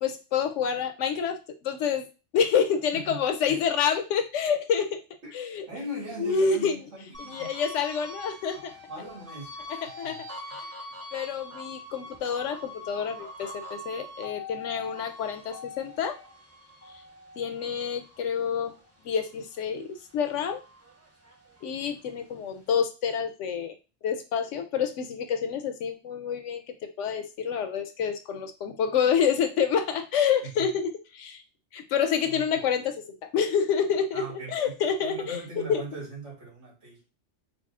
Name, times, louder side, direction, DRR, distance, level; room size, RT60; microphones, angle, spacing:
voice 1, 0.0-2.1 2.3-4.9 5.3-5.7 6.2-6.8 7.2-8.7 9.8-10.2 11.1-16.2 17.4-18.7 19.0-20.6 21.6-23.7 24.0-31.4 31.7-35.8, left 7 dB, 85° left, 7 dB, 0.9 m, -28 dB
voice 2, 2.9-3.6 5.2-5.3 5.7-7.5 8.7-10.2 10.9-11.0 30.4-30.7 32.3-32.4 34.1-37.0, right 1 dB, 80° right, -5 dB, 1.9 m, -40 dB
sound 1, 7.1-19.8 20.2-21.9, left 2 dB, 15° right, 0.6 m, -44 dB
4.0 x 2.1 x 3.5 m, 0.31 s
omnidirectional pair, 1.2 m